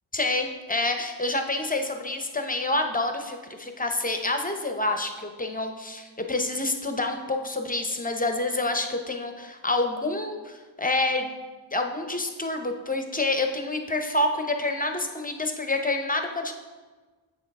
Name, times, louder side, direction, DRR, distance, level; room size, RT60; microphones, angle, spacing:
voice 1, 0.1-11.3 11.7-16.5, left 2 dB, 20° left, 5 dB, 0.7 m, -28 dB
8.3 x 6.2 x 3.5 m, 1.3 s
wide cardioid pair, 105°, 48 cm